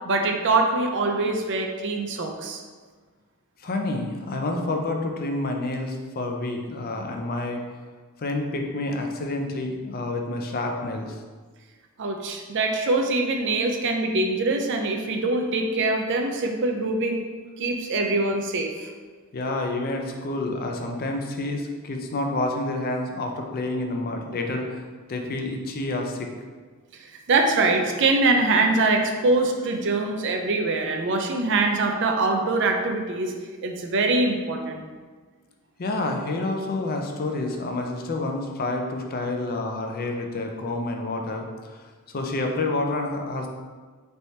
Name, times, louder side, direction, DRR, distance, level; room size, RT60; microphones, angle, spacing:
voice 1, 0.1-2.6 12.0-17.3 17.6-18.9 27.0-33.3 33.6-34.9, right 3 dB, 55° right, 3 dB, 0.5 m, -23 dB
voice 2, 3.6-7.6 8.2-11.1 19.3-24.8 25.1-26.3 35.8-41.5 41.8-43.5, left 2 dB, 45° left, 3 dB, 0.5 m, -28 dB
4.3 x 3.3 x 2.7 m, 1.5 s
head